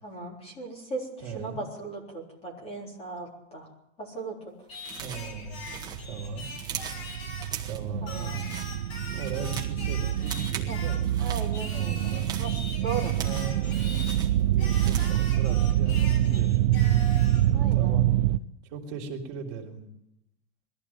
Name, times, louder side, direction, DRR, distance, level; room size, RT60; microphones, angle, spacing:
voice 1, 0.0-1.1 1.3-3.7 4.0-4.4 8.0-8.4 10.7-10.8 11.2-12.1 12.4-12.5 12.8-13.3 17.5-18.0, right 4 dB, 15° left, 2 dB, 3.7 m, -37 dB
voice 2, 1.2-1.6 5.0-5.7 6.1-6.5 7.6-8.3 8.9-11.1 12.1-12.4 13.2-16.9 17.7-18.1 18.6-19.9, right 5 dB, 40° right, 0 dB, 3.5 m, -39 dB
Singing, 4.7-7.6 8.1-11.1 11.5-14.2 14.6-17.5, left 3 dB, 50° left, 5.9 m, -42 dB
sound 1, 4.8-5.3 5.6-7.0 7.4-7.9 8.3-8.7 9.1-9.8 10.2-10.7 11.0-11.5 12.0-13.6 13.9-15.2, right 7 dB, 10° right, 1.8 m, -40 dB
sound 2, 5.0-18.4, right 13 dB, 80° right, 0.9 m, -26 dB
21.5 x 15.0 x 9.2 m, 0.79 s
supercardioid pair, 175°, 37 cm